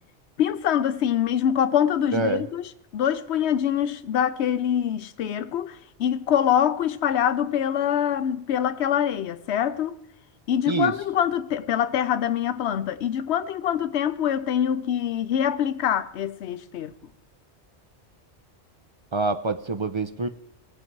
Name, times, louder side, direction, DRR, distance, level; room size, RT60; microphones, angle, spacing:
voice 1, 0.4-10.0 10.5-16.9, left 9 dB, 75° left, 0.9 m, -24 dB
voice 2, 2.1-2.4 10.7-10.9 19.1-20.3, right 3 dB, 45° right, 0.4 m, -25 dB
19.0 x 7.9 x 4.5 m
omnidirectional pair, 1.2 m